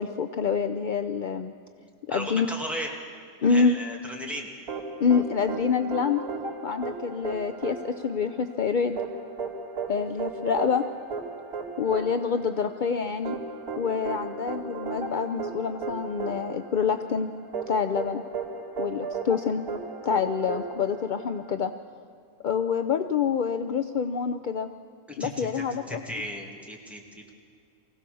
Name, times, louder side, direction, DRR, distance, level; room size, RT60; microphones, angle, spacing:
voice 1, 0.0-1.5 2.1-2.5 3.4-3.7 5.0-6.2 6.6-9.0 9.9-10.8 11.8-13.4 13.8-17.3 17.7-18.2 18.8-19.6 20.0-21.7 22.4-24.7 25.2-26.0, left 6 dB, 55° left, 8 dB, 0.5 m, -26 dB
voice 2, 2.1-2.9 3.4-4.5 25.1-27.3, equal, ahead, -1 dB, 2.4 m, -36 dB
sound 1, 4.7-21.6, right 4 dB, 75° right, 3.4 m, -35 dB
24.0 x 16.5 x 7.0 m, 2.4 s
omnidirectional pair, 1.5 m